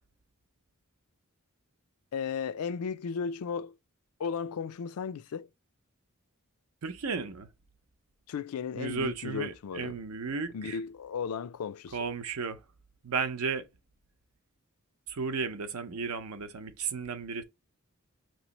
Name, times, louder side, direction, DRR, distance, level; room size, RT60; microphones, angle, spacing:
voice 1, 2.1-3.8 4.2-5.5 8.3-10.0 10.5-12.0, left 6 dB, 85° left, 0.4 m, -35 dB
voice 2, 6.8-7.5 8.8-10.8 11.9-12.6 13.0-13.7 15.1-17.4, right 5 dB, 85° right, 0.7 m, -34 dB
6.0 x 3.0 x 2.9 m
head